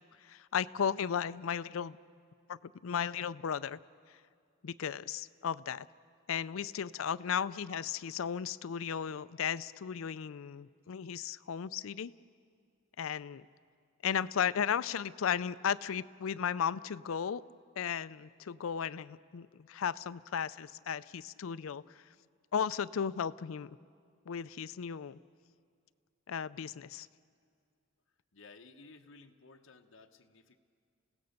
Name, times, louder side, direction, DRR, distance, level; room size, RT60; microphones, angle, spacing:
voice 1, 0.2-2.0 2.5-3.8 4.6-5.9 6.3-12.1 13.0-13.5 14.0-17.4 17.8-22.0 22.5-23.8 24.3-25.2 26.3-27.1, left 7 dB, 85° left, 15 dB, 0.4 m, -35 dB
voice 2, 28.3-30.6, left 3 dB, 65° left, 4 dB, 1.0 m, -56 dB
29.0 x 16.5 x 6.6 m, 2.2 s
head